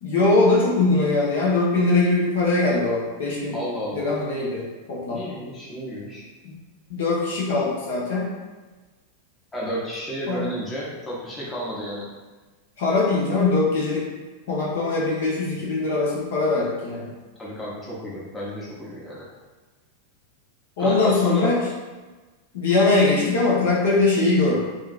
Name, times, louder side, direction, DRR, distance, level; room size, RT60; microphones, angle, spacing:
voice 1, 0.0-3.6 3.9-5.2 6.9-8.3 10.3-10.5 12.8-14.0 14.5-17.1 20.8-21.6 22.5-24.6, left 3 dB, 55° left, -5 dB, 0.7 m, -21 dB
voice 2, 3.5-4.1 5.1-6.2 9.5-12.1 17.4-19.3 20.8-21.6, equal, 10° left, -7 dB, 0.8 m, -31 dB
2.8 x 2.5 x 2.4 m, 1.3 s
figure-of-eight pair, 90°, 0 cm